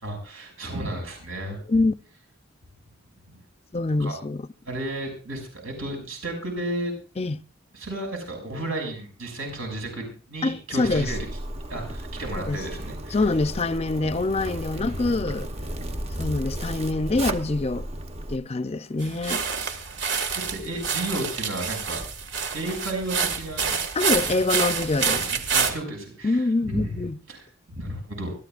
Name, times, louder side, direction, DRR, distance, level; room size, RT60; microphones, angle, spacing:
voice 1, 0.0-1.6 4.0-4.2 4.6-6.9 7.7-11.2 11.7-13.2 14.7-15.4 20.5-22.0 22.5-23.8 25.1-27.4 27.7-28.3, right 1 dB, 80° right, 6.4 m, -33 dB
voice 2, 3.7-4.5 7.2-7.4 10.4-11.1 12.5-12.6 13.1-15.5 16.2-17.9 18.3-19.4 24.0-25.2 26.2-27.2, left 2 dB, 30° left, 0.6 m, -25 dB
Zipper (clothing), 10.8-18.4, right 1 dB, 30° right, 0.9 m, -34 dB
sound 1, 19.0-25.7, right 6 dB, 60° right, 2.0 m, -27 dB
25.0 x 14.5 x 2.5 m
head